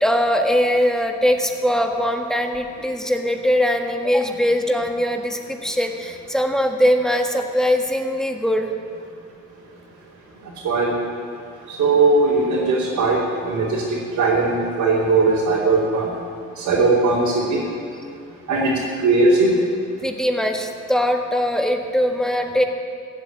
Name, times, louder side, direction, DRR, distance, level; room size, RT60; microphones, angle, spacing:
voice 1, 0.0-8.7 18.5-18.7 20.0-22.6, equal, ahead, 3 dB, 1.5 m, -21 dB
voice 2, 11.7-16.1 16.6-17.6 18.5-19.5, right 3 dB, 75° right, -7 dB, 3.3 m, -19 dB
15.0 x 8.1 x 9.1 m, 2.5 s
cardioid pair, 90°, 30 cm